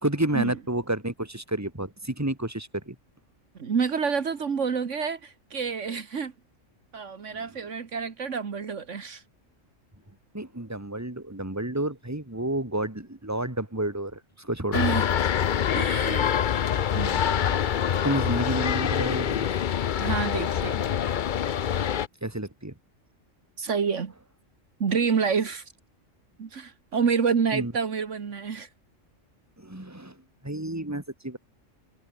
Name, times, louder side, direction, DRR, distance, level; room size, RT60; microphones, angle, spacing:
voice 1, 0.0-3.0 10.3-14.8 18.0-19.5 22.2-22.7 27.5-27.7 29.6-31.4, right 1 dB, 10° right, 2.8 m, -30 dB
voice 2, 3.6-6.3 6.9-9.2 14.7-15.1 15.7-16.3 16.7-17.6 20.0-20.8 23.6-24.1 24.8-25.6 26.4-28.7, right 6 dB, 70° right, 1.8 m, -28 dB
sound 1, 14.7-22.1, left 9 dB, 50° left, 0.7 m, -25 dB
omnidirectional pair, 1.3 m